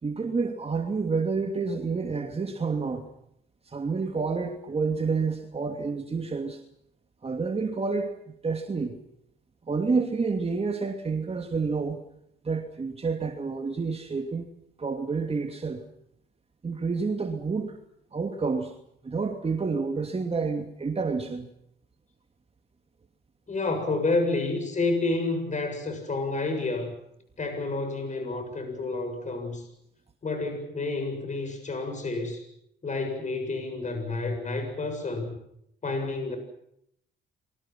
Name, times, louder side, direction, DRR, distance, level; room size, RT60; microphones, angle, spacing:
voice 1, 0.0-3.1 3.7-6.6 7.2-8.1 8.4-9.0 9.7-12.0 12.4-14.5 14.8-15.8 16.6-17.8 18.1-18.7 19.0-21.5, right 4 dB, 30° right, 4 dB, 2.9 m, -29 dB
voice 2, 23.5-27.0 27.4-29.7 30.2-32.4 32.8-35.3 35.8-36.4, left 3 dB, 35° left, 6 dB, 7.5 m, -29 dB
29.0 x 23.5 x 6.1 m, 0.75 s
cardioid pair, 90°, 20 cm